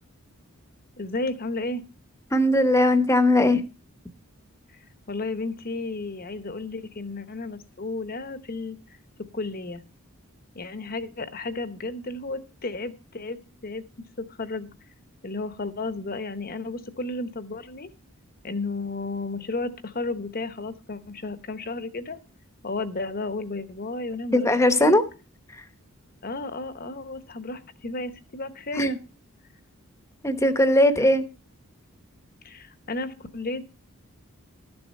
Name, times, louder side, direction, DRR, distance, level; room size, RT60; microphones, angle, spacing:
voice 1, 1.0-1.8 5.1-8.8 9.3-9.8 10.5-13.8 14.2-14.7 15.2-17.9 18.4-22.2 22.6-24.5 24.8-25.0 26.2-29.0 31.0-31.1 32.4-33.7, left 3 dB, 40° left, 0.9 m, -33 dB
voice 2, 2.3-3.6 24.3-25.0 25.5-25.7 28.7-29.0 30.2-31.2, left 1 dB, 15° left, 0.9 m, -19 dB
12.5 x 7.1 x 5.3 m
head